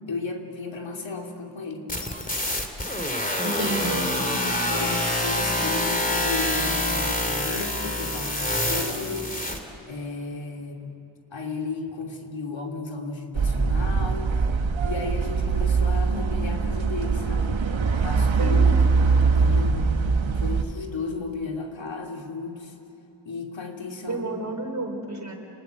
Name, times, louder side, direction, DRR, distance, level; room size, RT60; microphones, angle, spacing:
voice 1, 0.1-1.9 4.7-9.3 9.9-10.9 11.3-14.5 14.8-17.6 17.8-18.8 19.0-19.9 20.3-22.7 23.2-24.2, left 3 dB, 75° left, 2 dB, 3.0 m, -34 dB
sound 1, 1.9-9.6, left 1 dB, 20° left, 2.6 m, -26 dB
voice 2, 3.4-4.1 18.4-18.8 24.1-25.3, right 2 dB, 40° right, 2 dB, 4.5 m, -30 dB
sound 2, 13.3-20.6, right 4 dB, 80° right, 1.4 m, -22 dB
29.0 x 20.0 x 8.2 m, 2.9 s
wide cardioid pair, 105°, 46 cm